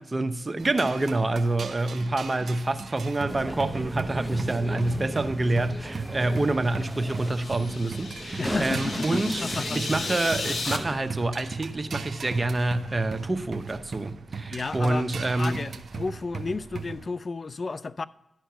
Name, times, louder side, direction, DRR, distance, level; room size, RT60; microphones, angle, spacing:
voice 1, 0.1-15.6, right 2 dB, 35° right, 0.8 m, -27 dB
sound 1, 0.6-17.1, right 5 dB, 65° right, 0.7 m, -38 dB
sound 2, 3.3-11.2, right 1 dB, ahead, 0.9 m, -37 dB
sound 3, 6.6-10.8, left 4 dB, 65° left, 0.8 m, -35 dB
voice 2, 8.4-9.8 14.5-15.1 15.4-18.0, left 3 dB, 50° left, 0.3 m, -32 dB
11.5 x 4.5 x 5.5 m
supercardioid pair, 40°, 0 cm